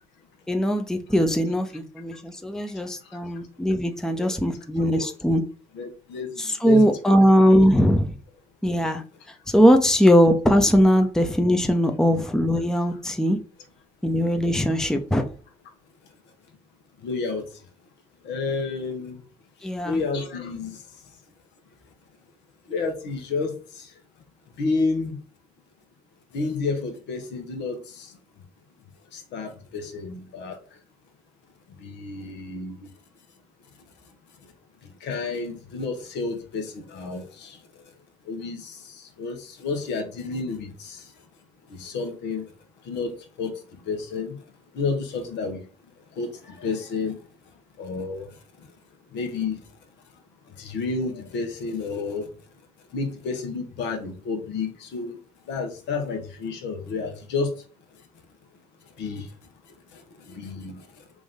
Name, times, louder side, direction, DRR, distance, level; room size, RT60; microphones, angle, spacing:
voice 1, 0.5-5.4 6.4-8.1 8.6-9.0 9.5-13.4 14.0-15.2 19.6-20.0, equal, 5° left, 0.7 m, -20 dB
voice 2, 5.7-7.2 17.0-17.4 18.2-19.2 19.8-20.8 22.7-23.5 24.6-25.2 26.3-28.1 29.1-30.5 31.8-32.8 35.0-37.6 38.3-38.7 39.2-41.0 41.8-42.4 42.9-43.1 43.4-43.5 43.9-44.3 44.7-45.6 46.2-47.2 47.8-48.3 49.1-49.6 50.6-52.3 52.9-55.2 55.5-57.5 59.0-59.2 60.3-60.8, left 4 dB, 65° left, 1.1 m, -30 dB
3.7 x 2.6 x 3.6 m
hypercardioid pair, 50°, 19 cm